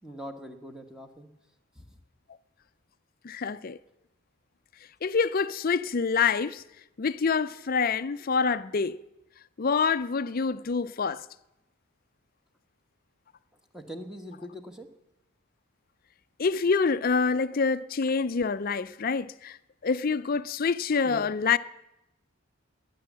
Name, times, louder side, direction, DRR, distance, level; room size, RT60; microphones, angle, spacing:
voice 1, 0.0-1.3 1.7-1.9 13.7-14.9 21.0-21.3, equal, 5° right, 1.2 m, -42 dB
voice 2, 3.2-3.8 5.0-6.6 7.0-9.0 9.6-11.2 16.4-19.6 19.8-21.6, left 5 dB, 40° left, 0.5 m, -26 dB
20.0 x 9.3 x 7.4 m
head